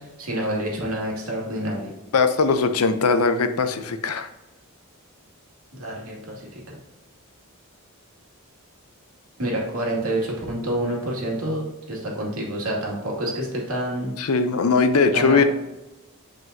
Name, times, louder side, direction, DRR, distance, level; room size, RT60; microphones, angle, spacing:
voice 1, 0.0-1.9 5.8-6.6 9.4-14.2 15.1-15.5, right 1 dB, 85° right, -2 dB, 2.3 m, -28 dB
voice 2, 2.1-4.3 14.2-15.4, left 4 dB, 85° left, 9 dB, 0.7 m, -20 dB
7.6 x 5.2 x 2.7 m, 1.0 s
head